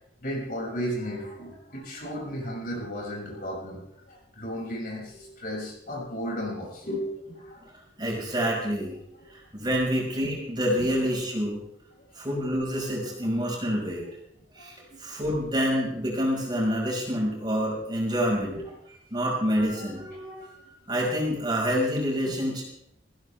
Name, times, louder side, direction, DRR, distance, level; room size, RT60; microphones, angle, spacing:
voice 1, 0.2-3.8 4.1-7.7 9.2-9.3 10.8-10.9 12.2-12.3 14.6-14.7 14.9-15.0 17.4-17.6 18.4-18.6 20.1-20.5, equal, 55° left, -3 dB, 6.4 m, -35 dB
voice 2, 8.0-9.0 9.3-11.6 12.2-14.0 14.5-18.7 19.1-20.5 20.9-22.6, equal, 25° right, -4 dB, 5.5 m, -27 dB
19.5 x 16.0 x 3.5 m, 0.75 s
head